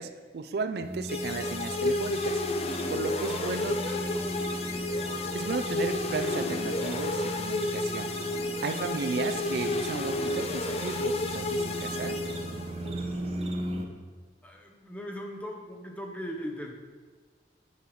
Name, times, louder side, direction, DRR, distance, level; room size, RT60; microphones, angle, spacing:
voice 1, 0.0-2.4 2.9-3.8 5.3-8.1 8.6-12.2, right 4 dB, 60° right, 8 dB, 0.4 m, -34 dB
sound 1, 0.8-13.9, right 1 dB, 35° right, 0.7 m, -37 dB
sound 2, 1.1-12.9, left 2 dB, 35° left, 0.5 m, -31 dB
voice 2, 3.2-4.3 14.4-16.7, equal, 10° left, 1 dB, 0.8 m, -39 dB
6.9 x 6.5 x 4.7 m, 1.4 s
head